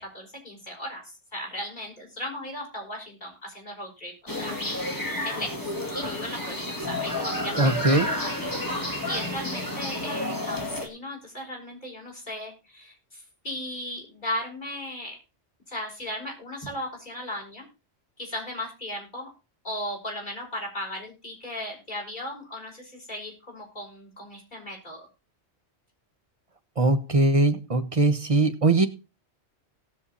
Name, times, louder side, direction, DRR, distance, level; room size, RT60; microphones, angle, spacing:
voice 1, 0.1-1.0 1.3-4.9 5.2-7.8 8.2-15.2 15.7-17.6 18.2-19.3 19.6-25.1, left 1 dB, 45° left, -1 dB, 6.1 m, -36 dB
sound 1, 4.3-10.9, left 1 dB, 15° left, 2.3 m, -30 dB
voice 2, 7.6-8.2 26.8-28.9, right 2 dB, 30° right, 8 dB, 1.3 m, -21 dB
18.0 x 6.7 x 4.2 m, 0.29 s
omnidirectional pair, 1.1 m